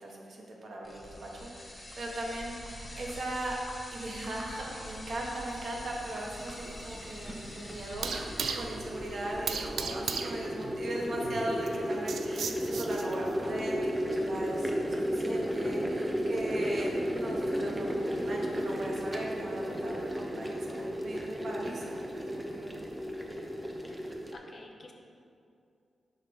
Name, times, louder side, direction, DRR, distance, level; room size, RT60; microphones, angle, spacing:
voice 1, 0.0-3.6 3.9-22.7, right 1 dB, 60° right, -2 dB, 1.1 m, -39 dB
sound 1, 0.8-9.9, left 1 dB, 25° left, 0.9 m, -45 dB
sound 2, 5.5-13.4, right 5 dB, 80° right, 0.3 m, -38 dB
sound 3, 5.7-5.8 6.9-24.4, equal, 10° right, 0.6 m, -34 dB
voice 2, 23.9-24.9, left 2 dB, 45° left, 1 dB, 0.6 m, -52 dB
5.7 x 3.3 x 5.0 m, 2.5 s
cardioid pair, 100°, 0 cm